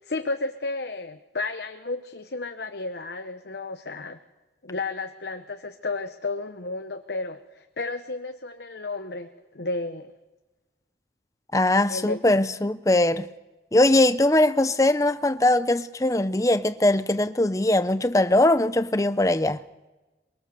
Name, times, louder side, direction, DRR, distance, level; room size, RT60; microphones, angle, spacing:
voice 1, 0.0-4.2 4.6-10.1 11.9-12.2, left 3 dB, 70° left, 0.9 m, -32 dB
voice 2, 11.5-13.3 13.7-19.6, left 1 dB, 20° left, 0.6 m, -21 dB
22.5 x 22.5 x 6.9 m
head